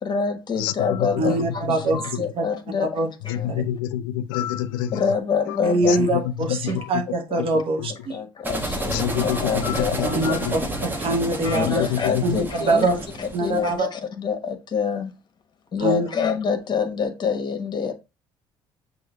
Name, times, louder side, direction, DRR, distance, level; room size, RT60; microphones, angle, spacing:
voice 1, 0.0-1.9 2.2-3.6 4.9-6.0 6.5-6.8 7.3-7.6 7.9-10.4 11.4-15.1 15.7-17.9, left 6 dB, 40° left, 1.1 m, -27 dB
voice 2, 1.2-2.0 2.4-2.5 2.9-3.1 3.5-3.6 5.6-8.2 10.0-11.8 12.2-13.1 13.3-13.9 15.8-16.1, right 2 dB, 55° right, 1.1 m, -24 dB
voice 3, 3.3-4.9 5.9-6.2 6.5-6.8 7.8-7.9 8.9-10.6 11.5-12.2, left 11 dB, 90° left, 0.4 m, -27 dB
sound 1, 8.4-13.7, right 1 dB, 20° right, 1.1 m, -30 dB
6.1 x 2.6 x 3.2 m
supercardioid pair, 70°, 11 cm